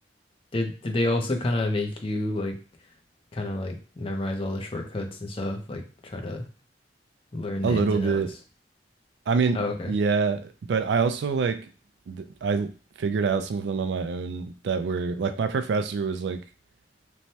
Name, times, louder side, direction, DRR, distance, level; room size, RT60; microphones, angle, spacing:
voice 1, 0.5-2.6 3.3-6.5 7.3-8.2 9.5-9.9, left 2 dB, 30° left, 3 dB, 0.6 m, -29 dB
voice 2, 7.6-8.3 9.3-11.7 12.1-12.7 13.0-16.4, right 5 dB, 75° right, 10 dB, 0.4 m, -26 dB
3.1 x 2.1 x 2.7 m, 0.37 s
head